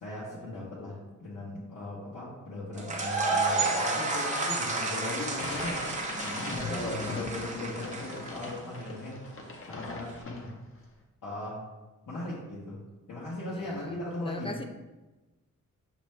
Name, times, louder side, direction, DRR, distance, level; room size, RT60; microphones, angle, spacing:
voice 1, 0.0-5.8 6.2-9.2 9.6-10.6 11.2-11.6 12.1-12.8 13.1-14.5, left 2 dB, 70° left, -8 dB, 1.2 m, -38 dB
sound 1, 2.8-8.8, right 3 dB, 25° right, 0.6 m, -31 dB
sound 2, 5.3-10.8, left 3 dB, 40° left, 0.7 m, -40 dB
voice 2, 6.7-7.3 13.5-14.0 14.3-14.6, left 1 dB, 20° left, 4 dB, 0.3 m, -39 dB
5.5 x 2.9 x 3.2 m, 1.1 s
wide cardioid pair, 130°, 32 cm